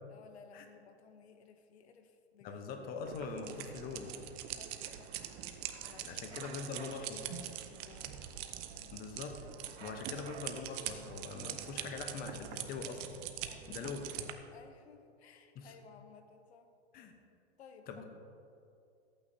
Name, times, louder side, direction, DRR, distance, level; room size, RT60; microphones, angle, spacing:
voice 1, 0.1-3.8 4.5-5.2 5.8-6.2 6.6-6.9 7.4-8.2 8.7-9.1 13.4-13.9 14.5-16.7 17.6-18.0, left 6 dB, 75° left, 8 dB, 0.9 m, -58 dB
voice 2, 2.4-4.1 6.0-7.3 8.9-9.4 9.8-13.1 13.7-14.1 15.5-15.7 16.9-17.1 17.9-18.0, left 5 dB, 25° left, 5 dB, 0.9 m, -42 dB
sound 1, 3.0-14.3, right 11 dB, 30° right, 0.5 m, -44 dB
sound 2, 6.3-7.3 9.8-10.9, right 7 dB, 80° right, 0.7 m, -53 dB
14.0 x 8.7 x 2.8 m, 2.6 s
hypercardioid pair, 125°, 33 cm